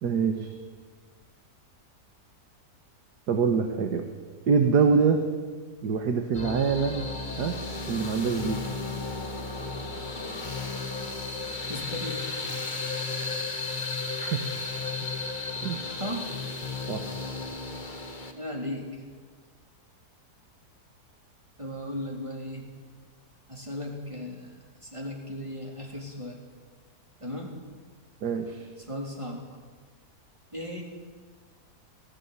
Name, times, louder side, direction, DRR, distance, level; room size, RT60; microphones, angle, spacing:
voice 1, 0.0-0.5 3.3-4.1 4.5-5.2 5.8-7.0 7.4-7.6 7.9-8.8 9.3-9.6 14.2-14.5 15.6-15.9 16.9-17.1 28.2-28.7, right 5 dB, 80° right, 6 dB, 1.9 m, -25 dB
sound 1, 6.3-18.3, left 3 dB, 30° left, 1.8 m, -34 dB
voice 2, 11.7-12.3 16.0-16.3 18.3-19.1 21.6-22.7 23.5-24.5 24.8-26.4 27.2-27.6 28.8-29.4 30.5-30.8, left 1 dB, 20° right, -1 dB, 3.6 m, -36 dB
18.5 x 15.5 x 9.6 m, 1.5 s
omnidirectional pair, 1.7 m